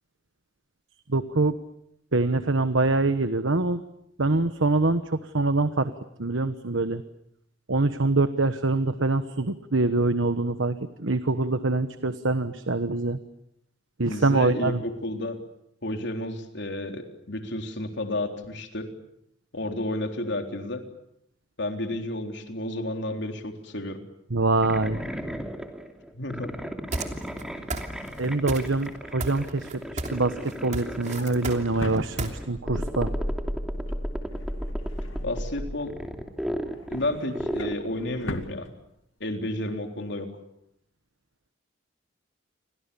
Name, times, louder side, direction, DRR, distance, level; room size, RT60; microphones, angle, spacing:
voice 1, 1.1-1.6 2.1-3.8 4.2-5.9 6.2-7.0 7.7-13.2 14.0-14.8 24.3-25.0 28.2-33.1, right 2 dB, 75° right, 11 dB, 1.2 m, -24 dB
voice 2, 14.1-15.4 15.8-18.9 19.5-20.8 21.6-24.0 26.1-26.5 35.2-35.9 36.9-38.7 39.2-40.3, left 1 dB, 65° left, 5 dB, 3.8 m, -31 dB
sound 1, 24.6-38.4, equal, 5° right, 2.9 m, -34 dB
sound 2, 26.9-27.4 27.7-28.2 28.5-28.9 29.2-30.2 30.5-32.3, right 2 dB, 40° right, 3.0 m, -32 dB
Drawer open or close, 27.9-32.8 33.1-33.5 33.7-35.9 36.3-39.3 39.7-39.9 40.1-40.2, left 1 dB, 85° left, 2.4 m, -43 dB
30.0 x 24.5 x 7.0 m, 0.77 s
head